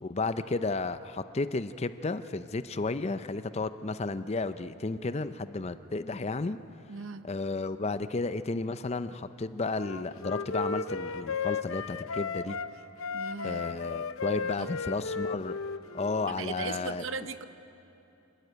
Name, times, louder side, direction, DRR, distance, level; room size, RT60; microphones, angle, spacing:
voice 1, 0.0-6.6 7.2-12.6 13.4-15.5 15.9-17.0, left 3 dB, 30° left, 12 dB, 0.5 m, -33 dB
voice 2, 6.9-7.3 13.1-13.6 14.6-15.0 16.3-17.5, right 4 dB, 60° right, 11 dB, 0.7 m, -38 dB
Wind instrument woodwind instrument, 9.8-12.7 13.0-16.3, left 5 dB, 75° left, 0.7 m, -35 dB
27.5 x 13.0 x 9.6 m, 2.9 s
head